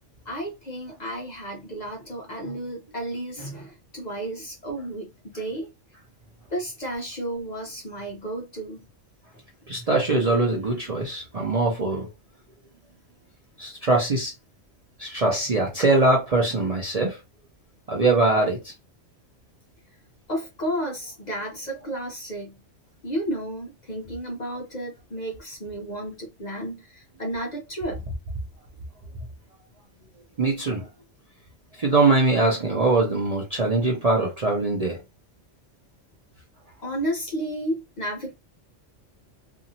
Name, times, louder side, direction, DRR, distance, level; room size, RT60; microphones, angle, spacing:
voice 1, 0.3-5.7 6.5-8.9 20.3-22.6 23.0-28.0 36.8-38.3, right 1 dB, 45° left, 0.7 m, -32 dB
voice 2, 9.7-12.1 13.6-14.3 15.0-17.2 17.9-18.7 30.4-30.9 31.8-35.0, right 2 dB, 45° right, 0.5 m, -22 dB
2.7 x 2.4 x 2.7 m
omnidirectional pair, 1.3 m